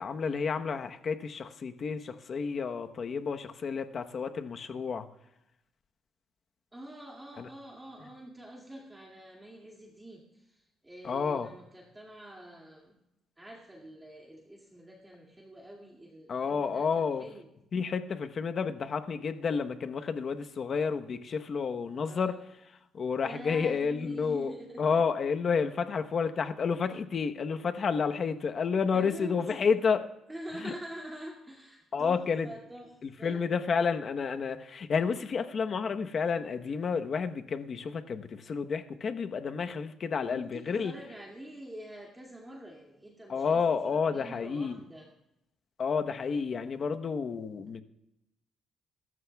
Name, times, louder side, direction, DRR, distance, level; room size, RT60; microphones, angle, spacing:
voice 1, 0.0-5.1 7.4-7.5 11.0-11.5 16.3-17.2 17.7-22.4 22.9-24.5 24.8-30.0 30.6-30.7 31.9-32.5 33.0-40.9 43.3-44.8 45.8-47.8, left 5 dB, 45° left, 7 dB, 1.0 m, -30 dB
voice 2, 6.7-12.9 13.4-17.5 21.9-22.5 23.2-25.0 28.9-29.9 30.3-33.4 40.2-45.1, right 1 dB, 10° right, -2 dB, 2.3 m, -46 dB
25.5 x 14.0 x 2.3 m, 0.88 s
cardioid pair, 105°, 0 cm